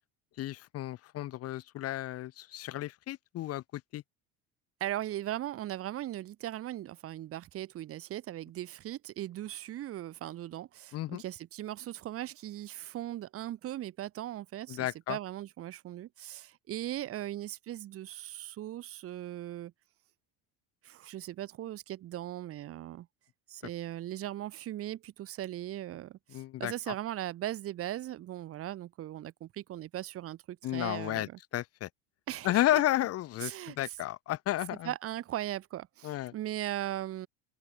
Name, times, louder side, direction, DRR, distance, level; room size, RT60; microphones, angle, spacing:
voice 1, 0.4-3.6 3.9-4.0 10.9-11.2 14.7-15.2 26.3-26.7 30.6-31.3 31.5-31.9 32.4-34.9 36.0-36.3, left 14 dB, 50° left, 1.5 m, -32 dB
voice 2, 4.8-19.7 20.8-23.1 23.5-31.4 32.3-32.8 33.4-34.0 34.7-37.3, right 13 dB, 45° right, 1.6 m, -39 dB
supercardioid pair, 110°, 31 cm